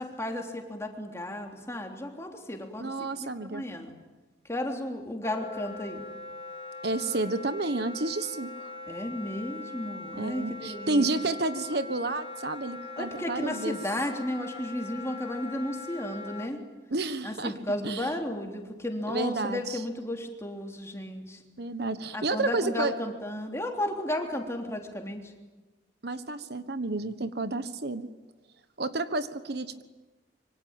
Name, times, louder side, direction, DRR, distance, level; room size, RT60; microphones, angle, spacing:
voice 1, 0.0-3.9 4.5-6.0 8.9-11.1 13.0-16.6 17.2-21.4 22.1-25.3, left 1 dB, 15° left, 2 dB, 3.3 m, -34 dB
voice 2, 2.8-3.6 6.8-8.8 10.2-13.8 16.9-17.5 17.8-18.1 19.1-19.8 21.6-22.9 26.0-28.1 28.8-29.8, right 2 dB, 60° right, 11 dB, 1.3 m, -30 dB
Wind instrument woodwind instrument, 5.2-16.5, left 3 dB, 30° left, 1.6 m, -42 dB
26.5 x 24.5 x 9.0 m, 1.2 s
head